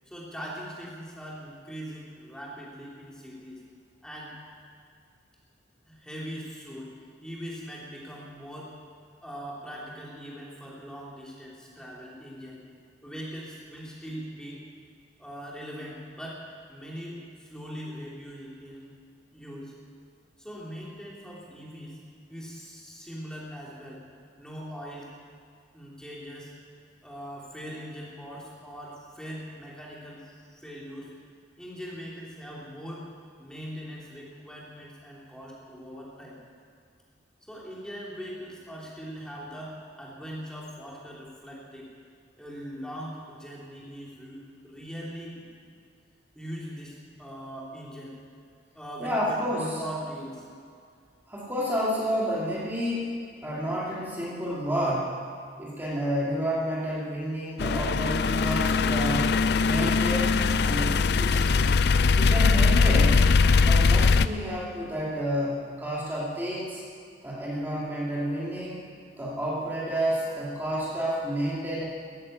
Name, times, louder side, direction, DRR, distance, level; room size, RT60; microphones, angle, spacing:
voice 1, 0.1-3.6 4.0-4.4 5.9-6.9 7.2-8.7 9.2-12.6 13.0-14.7 15.2-16.4 16.7-18.9 19.3-19.7 20.4-22.0 22.3-24.0 24.4-25.1 25.7-26.5 27.0-31.1 31.6-33.0 33.4-36.4 37.4-41.9 42.4-45.5 46.3-48.2 48.7-50.4, equal, 5° left, -5 dB, 2.8 m, -41 dB
voice 2, 49.0-49.8 51.3-55.1 55.6-59.3 59.6-60.4 60.6-61.7 62.2-63.2 63.6-66.8 67.2-71.8, equal, 10° right, -6 dB, 2.6 m, -30 dB
sound 1, 57.6-64.3, left 4 dB, 60° left, 0.4 m, -21 dB
14.5 x 10.0 x 8.8 m, 2.2 s
head